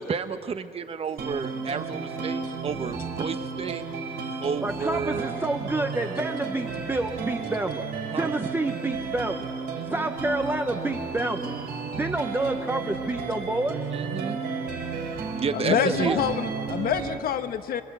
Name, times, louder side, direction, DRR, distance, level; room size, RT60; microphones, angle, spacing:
voice 1, 0.0-3.8 4.4-5.3 8.1-8.3 9.7-10.1 13.9-14.4 15.3-16.2, right 6 dB, 35° right, 10 dB, 1.0 m, -31 dB
sound 1, 1.2-17.2, right 5 dB, 85° right, 3.5 m, -33 dB
voice 2, 4.6-7.8 8.1-9.5 9.8-11.5 11.9-13.8 15.7-16.2, right 2 dB, 15° right, 5 dB, 0.8 m, -28 dB
voice 3, 15.5-17.8, left 9 dB, 65° left, 9 dB, 1.1 m, -27 dB
26.0 x 24.5 x 8.2 m, 2.6 s
cardioid pair, 150°, 16 cm